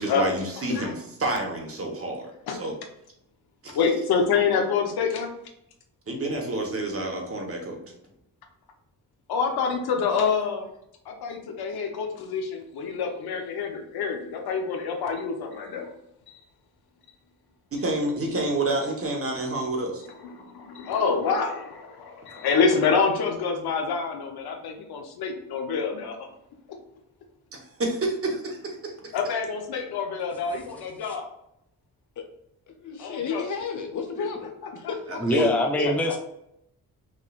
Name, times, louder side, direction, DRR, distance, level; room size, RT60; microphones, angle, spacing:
voice 1, 0.0-2.7 3.6-3.8 6.1-7.8 17.7-20.0 27.5-29.2 35.2-35.5, right 2 dB, 40° right, 1 dB, 1.2 m, -29 dB
voice 2, 3.7-5.3 9.3-10.7 11.0-15.9 16.3-16.4 20.2-26.2 29.1-31.3 33.0-33.4 34.8-34.9, left 5 dB, 85° left, 3 dB, 0.9 m, -27 dB
voice 3, 32.7-35.1 35.8-35.9, left 6 dB, 55° left, 4 dB, 1.0 m, -33 dB
voice 4, 35.2-36.2, left 1 dB, 5° left, 2 dB, 0.5 m, -23 dB
5.3 x 3.3 x 2.4 m, 0.79 s
cardioid pair, 90°, 37 cm